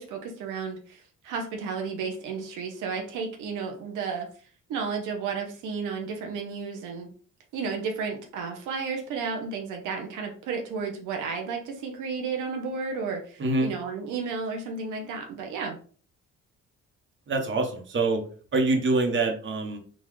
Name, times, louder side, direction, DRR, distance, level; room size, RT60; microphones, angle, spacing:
voice 1, 0.0-4.3 4.7-7.1 7.5-15.8, right 5 dB, 85° right, 2 dB, 0.7 m, -33 dB
voice 2, 13.4-13.7 17.3-18.2 18.5-19.8, right 2 dB, 40° right, 3 dB, 1.0 m, -25 dB
3.9 x 2.4 x 3.0 m, 0.42 s
cardioid pair, 90°, 30 cm